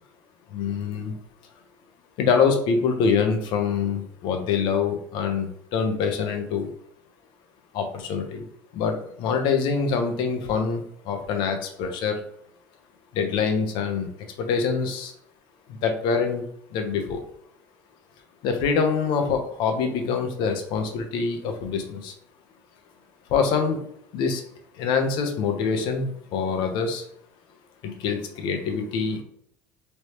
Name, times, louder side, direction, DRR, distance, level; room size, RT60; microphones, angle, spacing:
voice 1, 0.5-1.1 2.2-6.7 7.7-8.4 8.7-12.1 13.1-14.1 14.4-15.1 15.8-16.4 16.7-17.2 18.4-22.1 23.3-23.8 24.1-24.4 24.8-27.0 28.0-29.2, left 5 dB, 70° left, 5 dB, 0.8 m, -25 dB
3.2 x 3.1 x 2.9 m, 0.69 s
cardioid pair, 120°, 8 cm